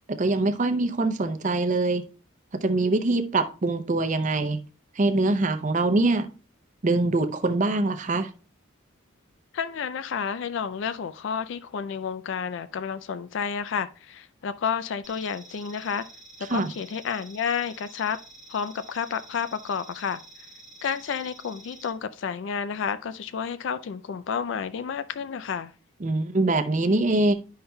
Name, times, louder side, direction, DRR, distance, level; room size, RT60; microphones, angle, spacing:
voice 1, 0.0-2.0 2.5-4.6 5.0-6.3 6.8-8.3 16.5-16.7 26.0-27.3, right 2 dB, 35° right, 0.6 m, -23 dB
voice 2, 9.5-16.0 16.5-18.2 18.5-20.2 20.8-25.7, left 6 dB, 60° left, 0.3 m, -30 dB
sound 1, 15.0-21.9, right 1 dB, 5° right, 1.5 m, -49 dB
10.0 x 5.6 x 2.2 m
head